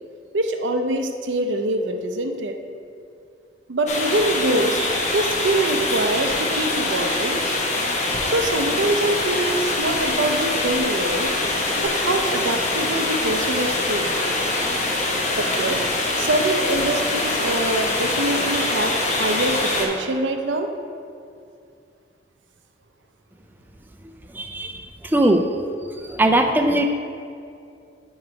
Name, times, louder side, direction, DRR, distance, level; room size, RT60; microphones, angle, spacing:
voice 1, 0.3-2.6 3.7-7.4 8.3-11.3 11.8-14.1 15.3-20.7, right 2 dB, 85° right, 5 dB, 0.6 m, -24 dB
sound 1, 3.9-19.9, left 2 dB, 40° left, 0.8 m, -24 dB
voice 2, 24.3-25.4 26.0-26.9, right 1 dB, 10° right, 4 dB, 0.4 m, -20 dB
9.3 x 3.1 x 5.1 m, 2.4 s
head